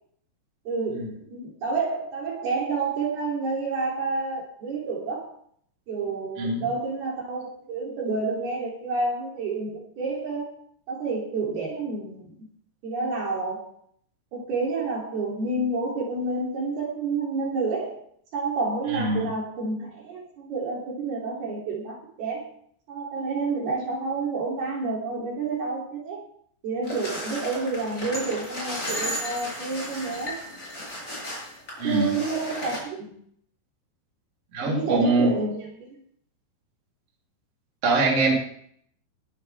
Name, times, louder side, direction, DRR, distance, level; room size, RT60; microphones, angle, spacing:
voice 1, 0.7-5.3 5.9-10.6 10.9-12.5 12.8-13.7 14.3-18.0 18.3-22.5 22.9-26.3 26.6-30.4 31.8-33.2 34.6-36.0, right 3 dB, 60° right, -2 dB, 5.1 m, -29 dB
voice 2, 18.9-19.3 31.8-32.1 34.5-35.3 37.8-38.3, right 2 dB, 35° right, -3 dB, 4.0 m, -23 dB
sound 1, 26.8-32.8, equal, 15° left, 6.2 m, -34 dB
21.0 x 12.5 x 3.6 m, 0.63 s
omnidirectional pair, 5.2 m